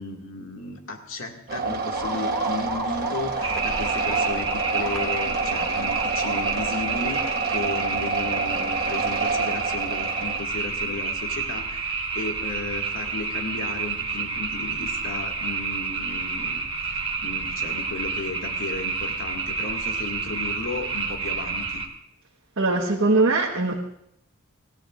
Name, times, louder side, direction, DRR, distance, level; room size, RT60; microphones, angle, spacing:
voice 1, 0.0-21.8, left 3 dB, 75° left, 1 dB, 2.2 m, -34 dB
sound 1, 1.5-10.4, right 4 dB, 45° right, 1.2 m, -28 dB
sound 2, 1.9-8.3, right 1 dB, 5° left, 2.3 m, -38 dB
sound 3, 3.4-21.9, right 4 dB, 25° right, 1.4 m, -29 dB
voice 2, 22.6-23.8, right 3 dB, 65° right, -2 dB, 1.4 m, -21 dB
25.5 x 15.5 x 2.6 m, 0.75 s
head